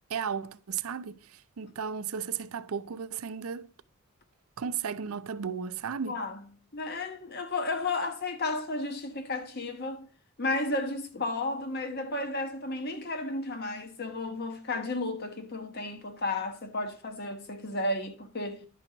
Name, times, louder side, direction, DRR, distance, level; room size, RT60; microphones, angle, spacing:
voice 1, 0.1-3.7 4.6-6.2, right 7 dB, 75° right, 0.5 m, -35 dB
voice 2, 6.1-6.4 6.7-10.1 10.4-18.7, left 2 dB, 45° left, 1.0 m, -33 dB
11.0 x 6.0 x 3.9 m
head